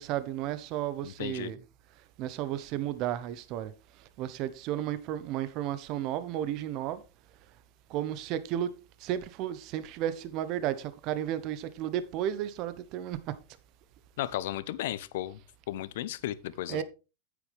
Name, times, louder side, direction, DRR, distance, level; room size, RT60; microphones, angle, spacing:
voice 1, 0.0-1.6 2.2-3.7 4.2-7.0 7.9-8.7 9.0-13.4 16.7-16.8, right 11 dB, 50° right, 1.1 m, -33 dB
voice 2, 1.0-1.5 14.2-15.4 15.7-16.8, left 13 dB, 70° left, 0.9 m, -34 dB
9.8 x 8.5 x 3.5 m
hypercardioid pair, 110°, 0 cm